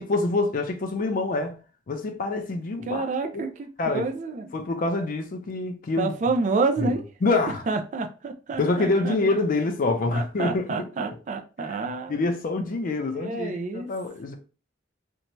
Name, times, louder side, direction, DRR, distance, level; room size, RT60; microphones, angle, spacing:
voice 1, 0.0-1.5 1.9-3.1 3.3-3.5 3.8-4.1 4.5-6.1 6.8-6.9 7.2-7.6 8.6-10.7 11.6-14.3, left 3 dB, 45° left, 0.4 m, -26 dB
voice 2, 2.9-4.5 6.0-7.0 7.7-9.2 10.1-12.2 13.1-13.9, right 3 dB, 40° right, 0.4 m, -28 dB
2.6 x 2.2 x 3.0 m
head